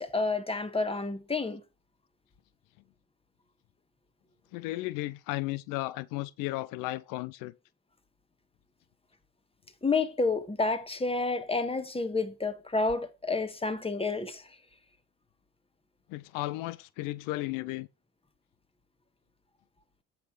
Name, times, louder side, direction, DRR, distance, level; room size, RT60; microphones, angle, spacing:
voice 1, 0.0-1.6 9.8-14.5, left 3 dB, 15° left, 1.6 m, -30 dB
voice 2, 4.5-7.5 16.1-17.9, left 19 dB, 85° left, 0.5 m, -34 dB
8.2 x 5.8 x 4.8 m
supercardioid pair, 75°, 32 cm